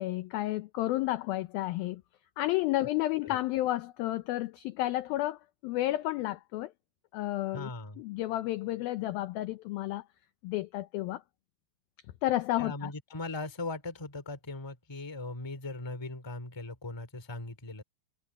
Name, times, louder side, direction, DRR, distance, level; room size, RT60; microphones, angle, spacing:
voice 1, 0.0-2.0 2.4-6.7 7.1-7.7 8.0-10.0 10.4-11.2 12.2-12.9, left 16 dB, 80° left, 2.2 m, -31 dB
voice 2, 7.5-8.0 12.6-17.8, left 2 dB, 10° left, 1.5 m, -39 dB
omnidirectional pair, 4.9 m